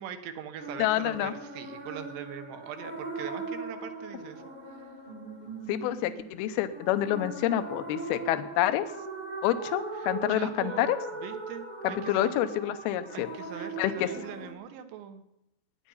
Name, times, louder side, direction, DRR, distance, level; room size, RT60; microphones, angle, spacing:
voice 1, 0.0-4.4 9.9-12.4 13.1-15.2, right 9 dB, 75° right, 8 dB, 3.3 m, -42 dB
sound 1, 0.6-14.5, right 3 dB, 25° right, 0.9 m, -39 dB
voice 2, 0.8-1.3 5.7-8.9 9.4-11.0 11.8-13.3 13.8-14.1, left 13 dB, 75° left, 11 dB, 2.5 m, -28 dB
21.5 x 10.0 x 5.6 m, 0.86 s
omnidirectional pair, 5.1 m